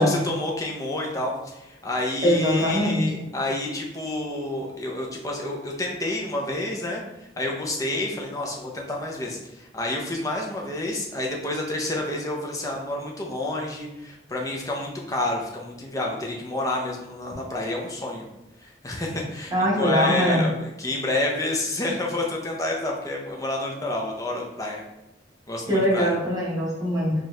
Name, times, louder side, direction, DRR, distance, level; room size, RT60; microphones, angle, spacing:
voice 1, 0.0-7.0 7.4-18.2 18.6-24.8 25.5-26.2, left 1 dB, 20° left, -1 dB, 0.6 m, -29 dB
voice 2, 2.2-3.3 19.5-20.5 25.7-27.2, equal, 20° right, -5 dB, 1.2 m, -22 dB
4.4 x 2.4 x 3.2 m, 0.92 s
head